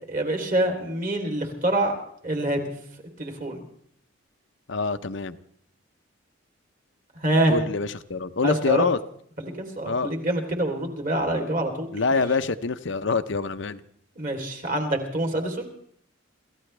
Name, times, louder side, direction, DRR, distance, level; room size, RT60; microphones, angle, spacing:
voice 1, 0.1-1.9 2.2-2.6 3.2-3.6 7.2-7.5 8.4-8.8 9.4-12.2 14.2-15.7, right 1 dB, 40° right, 3 dB, 3.3 m, -26 dB
voice 2, 4.7-5.4 7.5-9.0 9.8-10.1 11.9-13.8, left 4 dB, 60° left, 10 dB, 0.7 m, -25 dB
29.0 x 15.0 x 3.3 m, 0.64 s
head